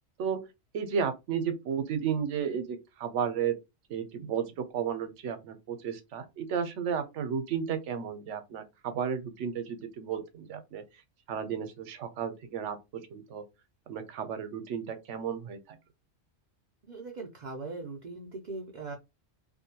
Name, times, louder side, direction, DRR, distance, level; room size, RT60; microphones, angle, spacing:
voice 1, 0.7-3.6 3.9-10.8 11.3-13.4 13.9-15.8, right 7 dB, 75° right, 1.0 m, -33 dB
voice 2, 16.9-18.9, right 3 dB, 60° right, 0.5 m, -40 dB
2.6 x 2.2 x 2.7 m
omnidirectional pair, 1.3 m